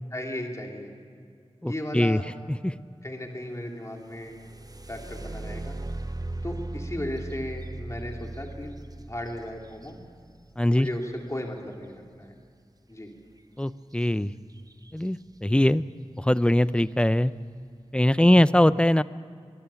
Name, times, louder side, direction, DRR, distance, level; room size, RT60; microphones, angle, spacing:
voice 1, 0.1-0.9 1.6-2.2 3.0-4.3 4.9-5.8 6.4-8.7 9.0-10.0 10.7-12.3 12.9-13.1, left 1 dB, 25° left, 1 dB, 3.2 m, -35 dB
voice 2, 1.6-2.2 2.5-2.7 10.6-10.9 13.6-14.3 14.9-15.8 16.2-17.3 17.9-19.0, left 1 dB, 10° left, 15 dB, 0.6 m, -21 dB
sound 1, 4.0-11.8 13.9-14.1 14.5-15.1 15.7-15.8 16.3-16.6, right 2 dB, 35° right, 0.9 m, -38 dB
24.0 x 21.5 x 7.1 m, 2.2 s
wide cardioid pair, 65°, 11 cm